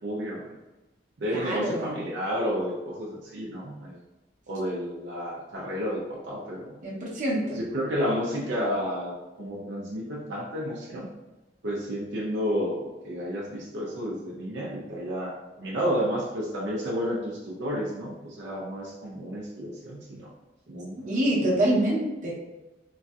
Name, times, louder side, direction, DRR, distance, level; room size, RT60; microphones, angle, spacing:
voice 1, 0.0-0.5 1.2-4.0 4.5-6.7 7.5-11.1 11.6-20.3 20.7-21.8, equal, 80° right, -3 dB, 0.5 m, -31 dB
voice 2, 1.3-2.0 6.8-7.6 21.1-22.3, right 1 dB, 45° right, -4 dB, 0.8 m, -26 dB
3.0 x 2.6 x 2.3 m, 1.1 s
head